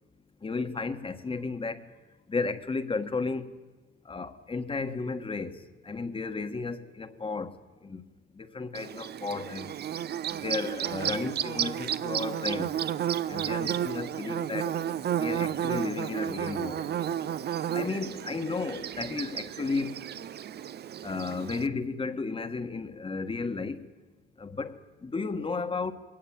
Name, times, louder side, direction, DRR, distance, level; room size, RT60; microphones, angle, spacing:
voice 1, 0.4-1.8 2.3-3.5 4.1-5.6 5.8-7.5 7.8-8.0 8.4-9.7 10.3-12.7 13.3-14.7 15.2-16.9 17.7-20.0 21.0-23.8 24.4-25.9, left 4 dB, 25° left, 1.5 m, -33 dB
Bird / Buzz, 8.7-21.7, right 10 dB, 55° right, 0.7 m, -32 dB
21.5 x 18.0 x 9.1 m
cardioid pair, 90°, 20 cm